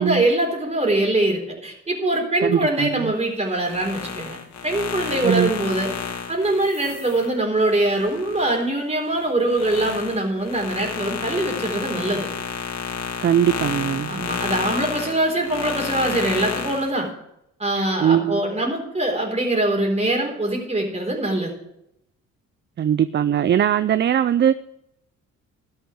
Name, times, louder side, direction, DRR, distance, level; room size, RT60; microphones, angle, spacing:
voice 1, 0.0-4.4 4.6-5.9 6.3-12.3 14.1-17.1 17.6-21.5, right 1 dB, 20° right, 1 dB, 4.1 m, -23 dB
voice 2, 2.4-3.1 5.2-5.5 13.2-14.2 18.0-18.4 22.8-24.6, right 9 dB, 35° right, 14 dB, 0.5 m, -20 dB
sound 1, 3.5-8.6 9.1-16.9, left 6 dB, 60° left, 1.9 m, -31 dB
12.5 x 6.5 x 8.2 m, 0.78 s
cardioid pair, 90°, 30 cm